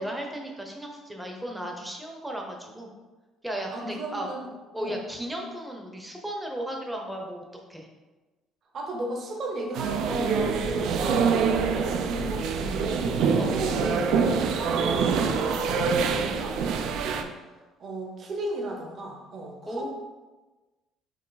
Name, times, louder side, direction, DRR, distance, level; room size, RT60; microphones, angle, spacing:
voice 1, 0.0-2.9 3.4-4.3 4.7-7.4 7.7-7.9 13.4-13.6 19.6-19.9, right 1 dB, 5° right, 1 dB, 0.7 m, -35 dB
voice 2, 3.7-4.4 4.8-5.0 8.7-13.1 13.5-17.2 17.8-19.9, right 1 dB, 40° right, 1 dB, 0.8 m, -35 dB
sound 1, 9.8-17.2, right 5 dB, 65° right, 0.4 m, -25 dB
4.6 x 2.9 x 4.0 m, 1.2 s
cardioid pair, 135°, 0 cm